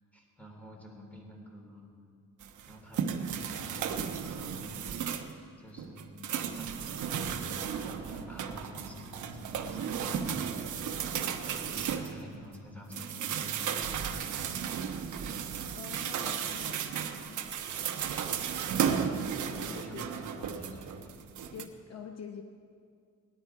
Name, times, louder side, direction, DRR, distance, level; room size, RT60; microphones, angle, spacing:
voice 1, 0.1-1.9 2.7-5.0 5.6-11.1 11.4-14.4 17.7-17.8 19.5-21.2, equal, 5° left, 0 dB, 3.1 m, -49 dB
sound 1, 2.4-5.4 5.8-12.5 12.9-21.6, right 7 dB, 70° right, 1.1 m, -34 dB
voice 2, 15.8-17.4 19.9-20.0 21.5-22.4, left 7 dB, 55° left, 4 dB, 0.9 m, -46 dB
19.5 x 10.5 x 4.8 m, 2.3 s
cardioid pair, 110°, 31 cm